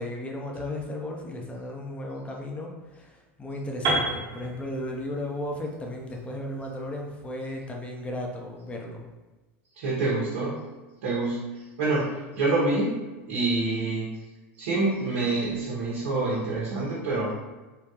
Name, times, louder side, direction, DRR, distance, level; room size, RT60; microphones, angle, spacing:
voice 1, 0.0-9.0, left 1 dB, 20° left, 0 dB, 0.6 m, -35 dB
Piano, 3.8-7.8, right 2 dB, 50° right, 1.2 m, -32 dB
voice 2, 9.8-10.6 11.0-11.4 11.8-13.0 13.3-14.1 14.6-17.3, right 2 dB, 80° right, -6 dB, 1.0 m, -26 dB
3.7 x 2.3 x 2.8 m, 1.2 s
hypercardioid pair, 110°, 7 cm